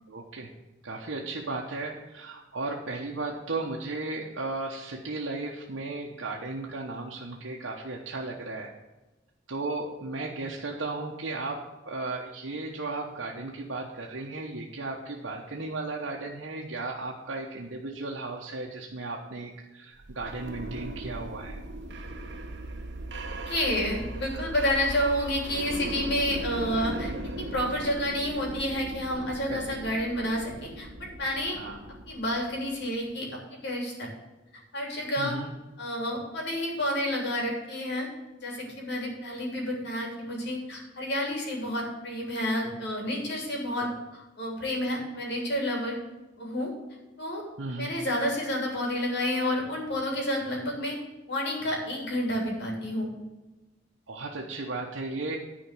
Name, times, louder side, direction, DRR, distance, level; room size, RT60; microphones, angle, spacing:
voice 1, 0.1-0.5 0.8-8.7 9.5-21.6 26.9-27.0 29.5-29.6 31.5-31.8 35.2-35.5 43.8-43.9 47.6-47.9 54.1-55.4, right 3 dB, 85° right, -1 dB, 1.1 m, -35 dB
sound 1, 20.0-32.8, right 1 dB, 60° right, 1.3 m, -38 dB
voice 2, 23.5-27.1 27.4-31.6 32.1-34.1 34.7-35.4 35.8-38.1 38.4-46.0 46.4-46.7 47.2-47.4 47.8-50.9 51.3-53.1, left 1 dB, 60° left, -1 dB, 3.2 m, -30 dB
10.5 x 5.1 x 7.5 m, 1.1 s
head